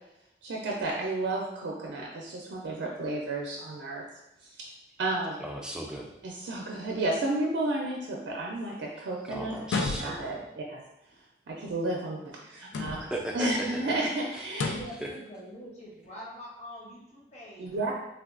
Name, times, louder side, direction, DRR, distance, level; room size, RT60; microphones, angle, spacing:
voice 1, 0.4-4.0 5.0-5.4 6.2-9.6 10.0-10.8 11.5-13.0 13.3-14.7 17.6-17.9, right 2 dB, 70° right, -2 dB, 0.4 m, -32 dB
voice 2, 5.4-6.1 9.3-10.3 13.0-13.6 14.3-14.4, equal, 5° right, -1 dB, 0.3 m, -36 dB
sound 1, 9.6-10.4 12.6-13.3 14.5-15.0, left 3 dB, 75° left, 0.3 m, -32 dB
voice 3, 14.7-17.7, equal, 40° left, -5 dB, 0.8 m, -44 dB
3.4 x 2.2 x 2.4 m, 0.88 s
head